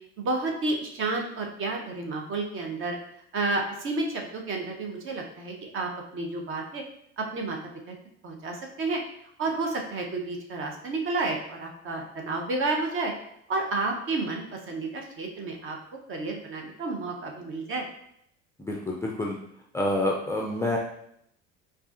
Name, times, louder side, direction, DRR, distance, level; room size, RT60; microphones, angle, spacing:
voice 1, 0.2-3.0 3.3-6.8 7.2-7.6 7.9-8.0 8.2-9.0 9.4-13.1 13.5-15.8 16.1-17.9, right 3 dB, 35° right, 2 dB, 0.8 m, -31 dB
voice 2, 18.6-19.3 19.7-20.8, left 1 dB, 10° left, -2 dB, 0.4 m, -27 dB
4.7 x 2.5 x 2.4 m, 0.74 s
figure-of-eight pair, 65°, 34 cm